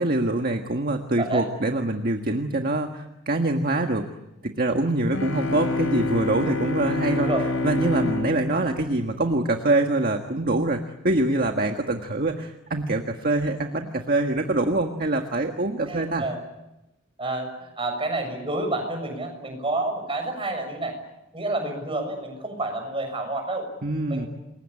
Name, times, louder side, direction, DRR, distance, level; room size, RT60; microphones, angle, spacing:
voice 1, 0.0-4.1 4.4-7.3 7.6-16.2 23.8-24.3, right 2 dB, 45° right, 4 dB, 1.6 m, -24 dB
sound 1, 5.1-9.8, left 3 dB, 85° left, 3.1 m, -28 dB
voice 2, 7.1-7.5 15.9-16.4 17.2-21.0 21.3-23.7 24.1-24.3, right 2 dB, 25° right, 4 dB, 6.9 m, -29 dB
28.5 x 22.5 x 8.5 m, 0.94 s
head